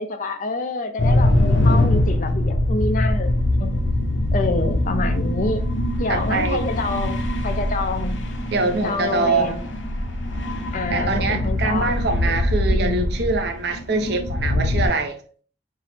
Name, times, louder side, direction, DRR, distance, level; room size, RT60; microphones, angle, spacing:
voice 1, 0.0-3.3 3.6-3.8 4.3-5.6 6.0-8.2 8.8-9.6 10.7-12.4 12.7-13.0, left 3 dB, 45° left, 0.5 m, -27 dB
sound 1, 1.0-14.9, left 1 dB, 85° left, 0.7 m, -22 dB
voice 2, 6.1-6.6 8.5-9.6 10.9-15.2, right 3 dB, 60° right, 0.5 m, -24 dB
4.6 x 2.0 x 4.1 m
head